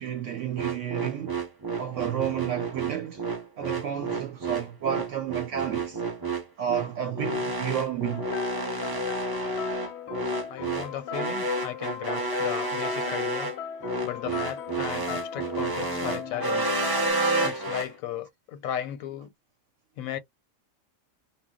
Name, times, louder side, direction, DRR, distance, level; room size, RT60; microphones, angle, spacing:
voice 1, 0.0-1.4 1.8-3.2 3.6-6.0 6.6-8.3 16.0-16.2, right 9 dB, 70° right, 0.9 m, -31 dB
sound 1, 0.6-17.9, right 2 dB, 25° right, 0.5 m, -30 dB
sound 2, 8.1-17.1, left 8 dB, 65° left, 0.8 m, -38 dB
voice 2, 10.5-13.5 14.0-16.8 17.4-19.3 20.0-20.2, left 10 dB, 85° left, 1.0 m, -36 dB
2.2 x 2.0 x 3.5 m
omnidirectional pair, 1.4 m